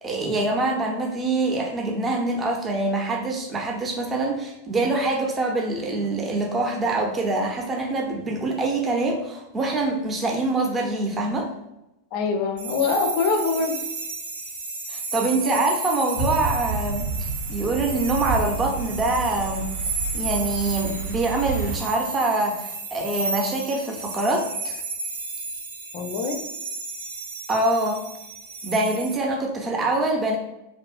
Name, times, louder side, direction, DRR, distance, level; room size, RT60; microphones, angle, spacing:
voice 1, 0.0-11.5 14.9-19.7 20.1-24.8 27.5-28.0 28.6-30.4, right 2 dB, 20° right, 1 dB, 0.5 m, -25 dB
voice 2, 12.1-13.8 25.9-26.4, left 4 dB, 45° left, 4 dB, 0.4 m, -24 dB
sound 1, 12.6-29.1, right 3 dB, 65° right, 0.6 m, -33 dB
sound 2, 16.1-21.8, right 4 dB, 85° right, 1.0 m, -30 dB
2.6 x 2.3 x 2.3 m, 0.92 s
figure-of-eight pair, 90°, 0 cm